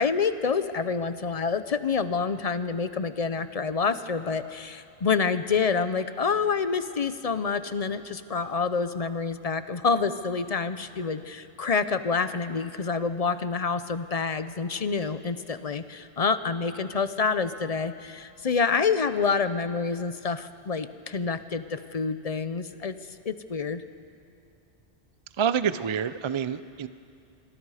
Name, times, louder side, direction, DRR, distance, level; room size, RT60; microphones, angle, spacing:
voice 1, 0.0-22.9 23.2-23.8, left 5 dB, 40° left, 12 dB, 0.7 m, -27 dB
voice 2, 25.4-26.9, right 7 dB, 45° right, 13 dB, 0.4 m, -27 dB
26.0 x 22.5 x 4.9 m, 2.4 s
omnidirectional pair, 1.1 m